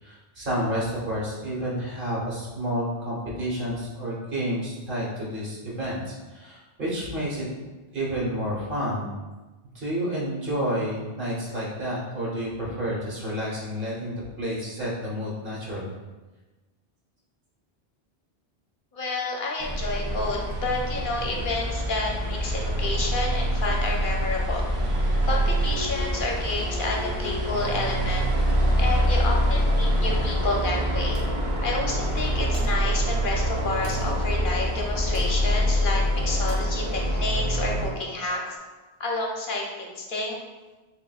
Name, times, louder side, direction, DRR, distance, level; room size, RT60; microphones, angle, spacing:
voice 1, 0.0-7.5 7.9-9.1 9.7-16.0, equal, 60° right, -5 dB, 1.4 m, -30 dB
voice 2, 18.9-24.7 25.2-28.3 28.8-31.2 31.6-38.6 39.0-40.4, left 2 dB, 60° left, -1 dB, 0.8 m, -30 dB
sound 1, 19.6-37.9, equal, 35° right, 0.6 m, -25 dB
sound 2, 27.5-38.6, left 1 dB, 25° left, 0.4 m, -44 dB
sound 3, 31.1-31.5 32.5-32.9 33.8-34.1 35.1-35.4 36.5-36.8, right 1 dB, 75° right, 1.1 m, -43 dB
6.8 x 2.7 x 2.3 m, 1.2 s
omnidirectional pair, 1.0 m